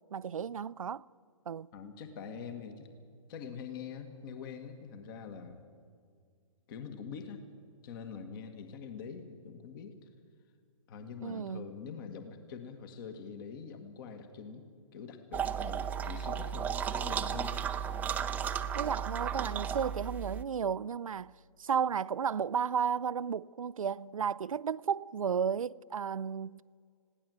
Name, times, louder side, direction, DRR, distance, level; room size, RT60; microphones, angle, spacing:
voice 1, 0.1-1.0 1.5-1.7 11.2-11.7 18.7-21.3 21.6-26.8, right 7 dB, 75° right, 0.5 m, -33 dB
voice 2, 1.7-2.9 3.3-5.6 6.7-7.4 7.8-10.1 10.9-14.7 14.9-17.6 17.9-18.0, left 6 dB, 40° left, 1.8 m, -44 dB
sound 1, 15.3-20.4, right 8 dB, 10° right, 0.6 m, -34 dB
20.5 x 16.5 x 7.9 m
figure-of-eight pair, 130°, 17 cm